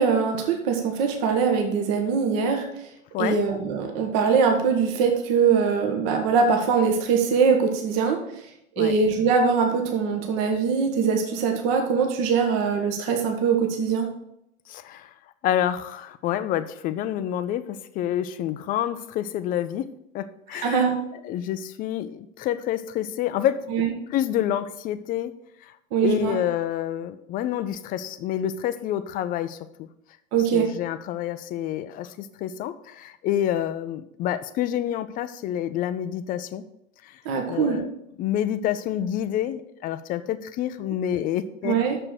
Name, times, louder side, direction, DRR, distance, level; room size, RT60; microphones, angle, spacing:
voice 1, 0.0-2.6 3.2-8.2 8.8-14.1 20.5-21.0 23.7-23.9 25.9-26.4 30.3-30.7 37.2-37.8 41.6-42.0, right 5 dB, 45° right, 3 dB, 1.4 m, -22 dB
voice 2, 14.7-15.1 15.4-19.9 20.1-20.9 21.2-23.7 24.1-25.3 26.0-29.9 30.5-36.6 37.0-37.2 37.5-37.9 38.2-41.8, left 11 dB, 25° left, 13 dB, 0.4 m, -28 dB
6.6 x 6.0 x 6.2 m, 0.80 s
figure-of-eight pair, 95°, 39 cm